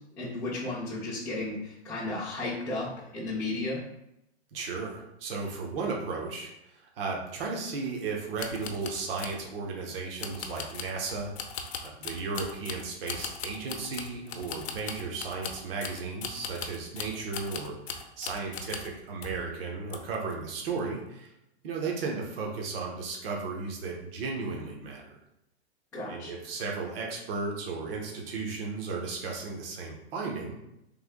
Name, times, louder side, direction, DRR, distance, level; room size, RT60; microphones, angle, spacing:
voice 1, 0.2-3.8 25.9-26.3, left 2 dB, 5° left, -10 dB, 0.4 m, -34 dB
voice 2, 4.5-21.3 21.6-25.2 26.1-30.6, right 4 dB, 60° right, -1 dB, 0.9 m, -35 dB
sound 1, 8.4-9.4 10.2-19.0 19.2-19.5 19.9-20.3 20.7-20.8, left 6 dB, 75° left, 0.7 m, -39 dB
3.4 x 2.5 x 3.6 m, 0.84 s
hypercardioid pair, 145°, 33 cm